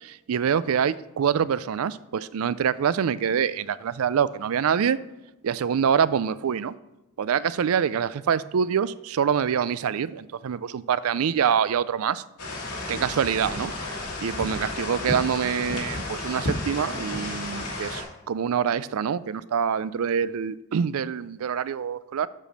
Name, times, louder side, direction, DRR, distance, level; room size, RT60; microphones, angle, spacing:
voice 1, 0.0-5.0 5.4-6.7 7.2-12.2 12.9-13.7 14.2-22.3, right 7 dB, 70° right, 17 dB, 0.4 m, -25 dB
sound 1, 12.4-18.0, left 2 dB, 85° left, 2.2 m, -32 dB
7.6 x 5.0 x 6.5 m, 0.99 s
head